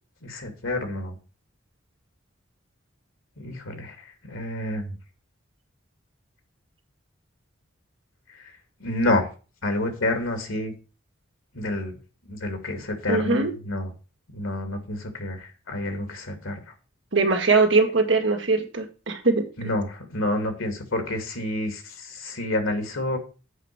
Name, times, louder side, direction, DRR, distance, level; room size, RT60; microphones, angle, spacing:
voice 1, 0.2-1.1 3.4-4.0 4.2-4.9 8.3-8.4 8.8-9.3 9.6-10.7 11.5-12.0 12.3-13.9 14.3-16.6 19.6-23.2, left 1 dB, 90° left, 6 dB, 2.4 m, -28 dB
voice 2, 13.1-13.5 17.1-19.7, right 3 dB, 65° right, 4 dB, 2.0 m, -21 dB
8.1 x 5.2 x 7.3 m, 0.34 s
head